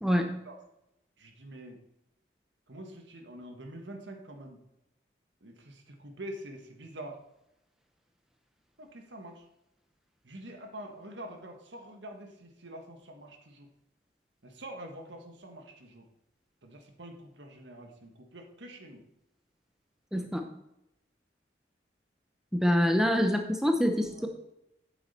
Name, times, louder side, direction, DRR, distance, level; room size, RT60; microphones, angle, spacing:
voice 1, 0.0-0.3 20.1-20.5 22.5-24.3, equal, 5° right, 4 dB, 0.7 m, -26 dB
voice 2, 1.2-1.8 2.7-4.6 5.4-7.2 8.8-9.4 10.2-13.7 14.4-16.0 16.6-19.0 24.1-24.3, right 1 dB, 80° right, 4 dB, 1.6 m, -46 dB
8.8 x 7.7 x 4.3 m, 0.86 s
head